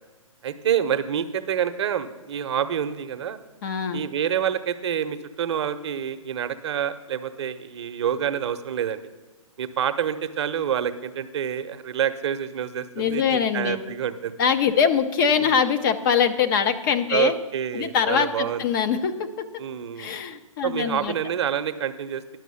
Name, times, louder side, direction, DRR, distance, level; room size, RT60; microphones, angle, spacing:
voice 1, 0.4-3.4 3.9-9.0 9.6-14.3 15.4-15.5 17.1-18.6 19.6-20.1 20.6-22.2, right 9 dB, 55° right, 10 dB, 0.7 m, -27 dB
voice 2, 3.6-4.0 12.9-13.8 14.4-17.3 17.7-19.6 20.0-21.1, left 7 dB, 40° left, 9 dB, 0.7 m, -23 dB
10.5 x 6.0 x 7.0 m, 1.2 s
hypercardioid pair, 135°, 18 cm